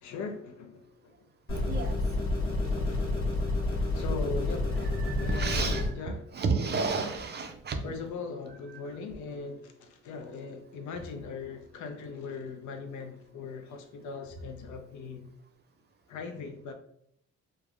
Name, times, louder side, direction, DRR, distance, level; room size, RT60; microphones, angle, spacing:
voice 1, 0.0-0.9 1.8-2.2 2.9-3.1 3.9-4.9 5.2-6.3 7.8-15.3 16.1-16.7, left 4 dB, 75° left, 0.5 m, -40 dB
sound 1, 1.5-5.9, left 2 dB, 45° left, 1.3 m, -29 dB
voice 2, 5.0-5.9 6.3-7.8, right 4 dB, 35° right, 0.4 m, -31 dB
3.2 x 2.1 x 2.4 m
cardioid pair, 90°, 30 cm